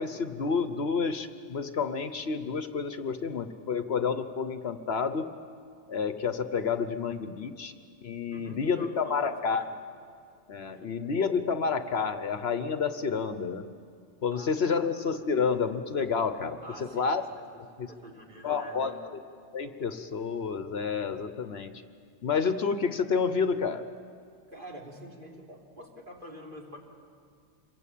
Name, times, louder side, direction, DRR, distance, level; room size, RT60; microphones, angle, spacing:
voice 1, 0.0-5.4 5.9-7.7 8.0-9.7 10.5-13.6 14.2-17.2 17.8-17.9 18.4-19.2 19.5-21.7 22.2-23.8, left 5 dB, 60° left, 10 dB, 1.2 m, -29 dB
voice 2, 8.3-9.3 9.6-9.7 10.7-10.9 14.3-14.9 16.6-17.5 17.9-19.0 24.5-26.8, equal, 45° right, -1 dB, 3.5 m, -46 dB
27.0 x 23.0 x 8.5 m, 2.2 s
omnidirectional pair, 1.2 m